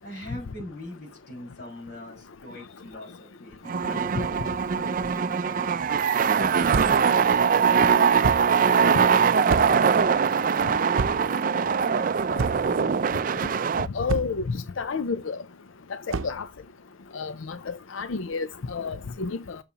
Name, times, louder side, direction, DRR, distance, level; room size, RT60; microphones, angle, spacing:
voice 1, 0.0-5.8 6.2-8.1 8.3-13.0, left 1 dB, 55° left, 5.4 m, -42 dB
sound 1, 3.7-13.9, right 6 dB, 45° right, 0.4 m, -22 dB
sound 2, 6.7-7.1 8.2-8.5 9.5-9.9 11.0-11.4 12.4-12.8 14.1-14.5 16.1-16.4, right 3 dB, 90° right, 0.6 m, -29 dB
voice 2, 13.9-15.4 15.9-16.0 16.2-16.5 17.1-19.6, left 4 dB, 80° left, 0.6 m, -30 dB
12.5 x 7.0 x 2.9 m
head